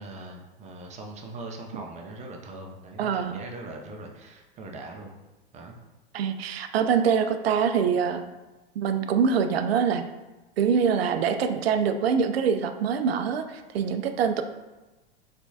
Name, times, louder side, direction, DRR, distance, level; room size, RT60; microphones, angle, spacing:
voice 1, 0.0-5.1 5.5-5.8, right 2 dB, 25° right, 1 dB, 0.6 m, -41 dB
voice 2, 3.0-3.3 6.1-8.2 8.8-10.0 10.6-14.4, right 6 dB, 80° right, 8 dB, 0.5 m, -24 dB
4.4 x 3.5 x 2.7 m, 1.1 s
hypercardioid pair, 110°, 30 cm